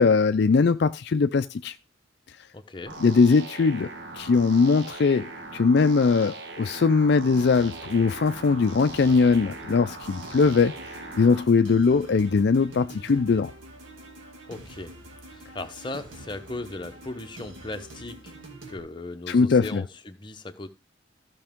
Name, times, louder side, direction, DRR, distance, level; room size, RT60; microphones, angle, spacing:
voice 1, 0.0-1.7 3.0-3.9 4.2-10.7 11.2-13.5 19.3-19.8, left 4 dB, 55° left, 0.4 m, -21 dB
voice 2, 2.5-3.0 14.5-14.9 15.3-18.4 18.7-20.7, left 2 dB, 25° left, 0.8 m, -37 dB
sound 1, 2.9-11.4, right 3 dB, 65° right, 1.5 m, -40 dB
sound 2, 7.4-18.8, right 1 dB, 85° right, 2.4 m, -45 dB
14.5 x 6.0 x 3.6 m
head